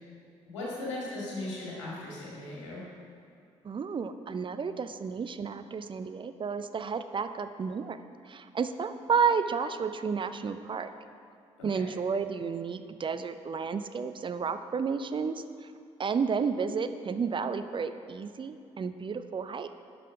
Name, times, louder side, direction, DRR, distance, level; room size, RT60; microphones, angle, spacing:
voice 1, 0.5-2.9 11.6-11.9, left 2 dB, 85° left, -5 dB, 2.0 m, -38 dB
voice 2, 3.6-8.0 8.3-10.9 11.6-15.7 16.0-19.7, right 5 dB, 35° right, 10 dB, 0.5 m, -31 dB
10.5 x 5.7 x 5.1 m, 2.5 s
figure-of-eight pair, 45°, 15 cm